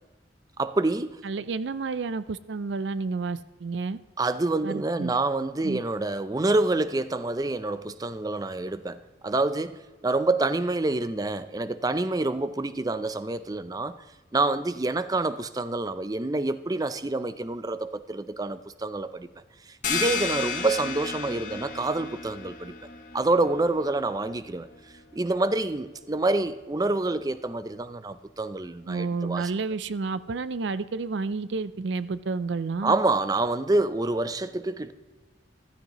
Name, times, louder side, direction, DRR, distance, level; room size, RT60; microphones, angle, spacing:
voice 1, 0.6-1.2 4.2-14.0 14.3-19.3 19.7-22.7 23.1-24.7 25.1-29.5 32.8-34.9, right 2 dB, 20° right, 0.5 m, -27 dB
voice 2, 1.2-4.0 4.6-5.1 5.6-5.8 28.9-33.0, right 4 dB, 75° right, 0.5 m, -30 dB
sound 1, 19.8-25.2, left 5 dB, 45° left, 1.7 m, -34 dB
15.0 x 13.5 x 3.0 m
head